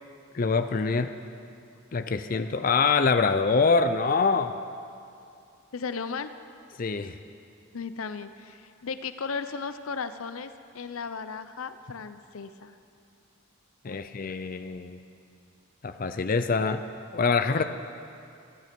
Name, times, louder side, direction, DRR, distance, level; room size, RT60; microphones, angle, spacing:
voice 1, 0.3-1.1 1.9-4.5 6.8-7.1 13.8-15.0 15.8-16.8 17.1-17.6, left 4 dB, 40° left, 9 dB, 0.5 m, -24 dB
voice 2, 5.7-6.3 7.7-12.8 13.9-14.0 17.6-17.7, left 5 dB, 85° left, 11 dB, 0.6 m, -36 dB
25.5 x 9.3 x 5.3 m, 2.5 s
head